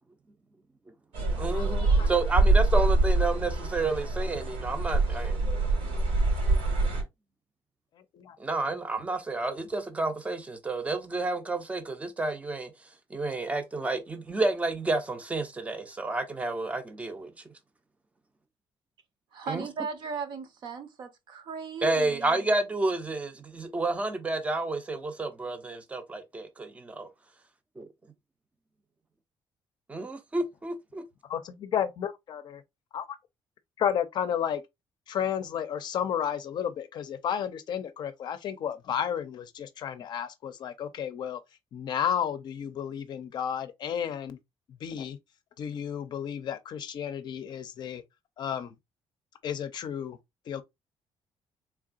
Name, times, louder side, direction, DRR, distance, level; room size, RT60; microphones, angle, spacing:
sound 1, 1.1-7.0, right 2 dB, 90° right, 2.2 m, -25 dB
voice 1, 1.4-5.4 8.4-12.7 13.1-17.3 19.5-19.7 21.8-27.1 27.8-27.9 29.9-31.0, right 2 dB, 15° right, 0.5 m, -30 dB
voice 2, 19.3-22.5, right 5 dB, 50° right, 0.8 m, -37 dB
voice 3, 31.3-32.6 32.9-33.0 33.8-34.6 35.1-41.4 41.7-44.4 44.7-45.2 45.6-48.0 48.4-48.7 49.4-50.2 50.5-50.6, left 9 dB, 50° left, 0.5 m, -32 dB
3.7 x 3.4 x 2.4 m
cardioid pair, 170°, 10 cm